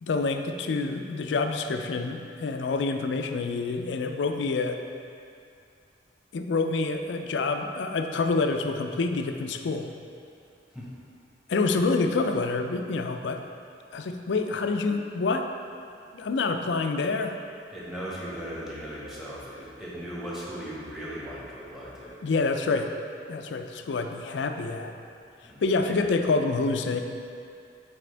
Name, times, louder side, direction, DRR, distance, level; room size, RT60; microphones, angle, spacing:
voice 1, 0.0-4.8 6.3-9.9 11.5-13.4 13.9-15.5 16.1-17.4 22.2-22.9 23.3-24.9 25.6-27.0, left 3 dB, 85° left, 6 dB, 0.4 m, -27 dB
voice 2, 17.7-22.2 25.4-25.9, equal, ahead, -8 dB, 1.3 m, -38 dB
7.6 x 4.3 x 3.3 m, 2.4 s
head